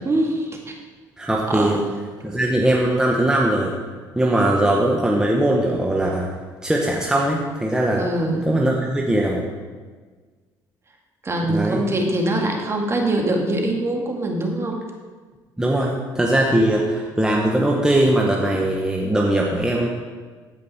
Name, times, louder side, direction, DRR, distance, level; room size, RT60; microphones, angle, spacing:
voice 1, 0.0-0.6 1.5-1.8 8.0-8.4 11.2-14.8, right 1 dB, 30° right, 1 dB, 2.0 m, -23 dB
voice 2, 1.2-1.8 2.2-3.7 4.1-6.3 6.6-8.0 8.4-9.5 11.5-11.8 15.6-19.9, right 1 dB, 10° right, -2 dB, 1.3 m, -20 dB
15.0 x 5.2 x 4.3 m, 1.4 s
supercardioid pair, 85°, 9 cm